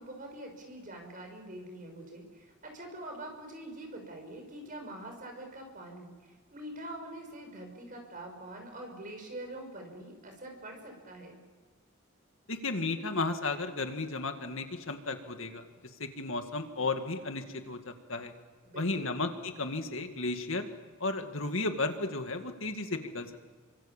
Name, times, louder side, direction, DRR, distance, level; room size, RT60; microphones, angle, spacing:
voice 1, 0.0-11.4 18.6-19.2, right 1 dB, 40° right, 3 dB, 6.5 m, -44 dB
voice 2, 12.5-15.6 16.0-18.3 18.8-20.7 21.0-23.4, left 3 dB, 65° left, 6 dB, 2.2 m, -34 dB
29.0 x 25.0 x 7.4 m, 1.5 s
head